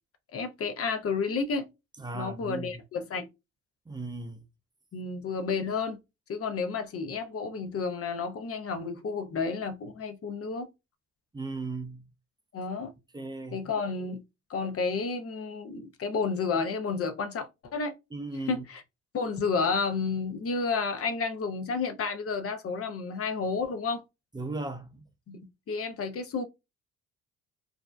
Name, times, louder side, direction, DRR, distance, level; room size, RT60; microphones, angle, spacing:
voice 1, 0.3-1.7 2.1-3.3 4.9-6.0 6.3-10.7 12.5-12.9 13.5-14.2 14.5-17.9 18.5-18.8 19.1-24.0 25.3-25.4 25.7-26.4, left 4 dB, 40° left, 0.7 m, -31 dB
voice 2, 2.0-2.7 3.9-4.4 11.3-12.1 13.1-13.6 18.1-18.6 24.3-25.0, right 3 dB, 10° right, 0.6 m, -36 dB
2.6 x 2.0 x 2.3 m
hypercardioid pair, 55°, 35 cm